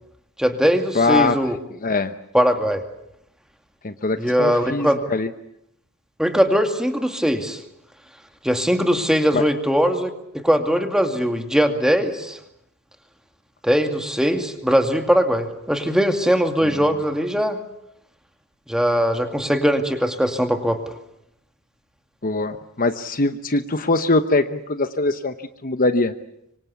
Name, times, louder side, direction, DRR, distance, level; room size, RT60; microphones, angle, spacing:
voice 1, 0.4-1.6 2.3-2.8 4.2-5.0 6.2-7.6 8.4-12.4 13.6-17.6 18.7-20.8, equal, 5° right, 6 dB, 2.4 m, -20 dB
voice 2, 0.9-1.4 1.8-2.1 3.8-5.3 9.3-9.5 16.6-16.8 22.2-25.3 25.6-26.1, left 3 dB, 40° left, 9 dB, 1.0 m, -22 dB
25.5 x 25.0 x 8.3 m, 0.79 s
head